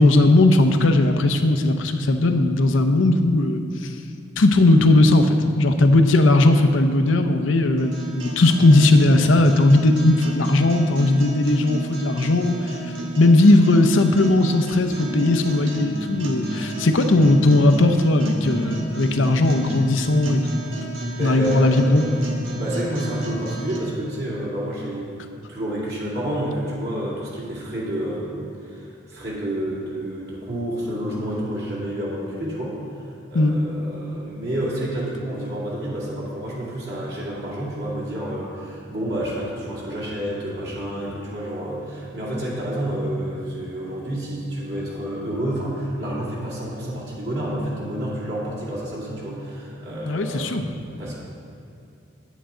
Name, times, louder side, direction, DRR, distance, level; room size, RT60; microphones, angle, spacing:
voice 1, 0.0-3.6 4.4-12.5 13.2-20.4 21.2-22.0 33.3-33.5 50.1-50.6, left 2 dB, 85° left, 7 dB, 0.7 m, -17 dB
sound 1, 7.8-23.8, right 1 dB, 85° right, 1.4 m, -32 dB
voice 2, 21.2-51.1, right 1 dB, 55° right, -7 dB, 2.4 m, -29 dB
9.3 x 9.2 x 3.8 m, 2.6 s
head